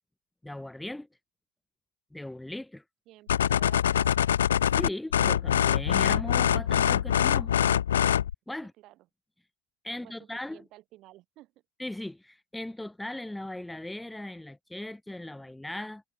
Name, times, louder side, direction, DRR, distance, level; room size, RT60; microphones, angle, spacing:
voice 1, 0.4-1.1 2.1-2.8 4.7-7.5 8.5-8.7 9.8-10.6 11.8-16.0, left 1 dB, 5° left, 3.4 m, -38 dB
voice 2, 3.1-4.4 8.8-9.1 9.9-11.5, right 17 dB, 35° right, 4.6 m, -54 dB
sound 1, 3.3-8.3, left 10 dB, 65° left, 0.5 m, -24 dB
figure-of-eight pair, 90°, 0 cm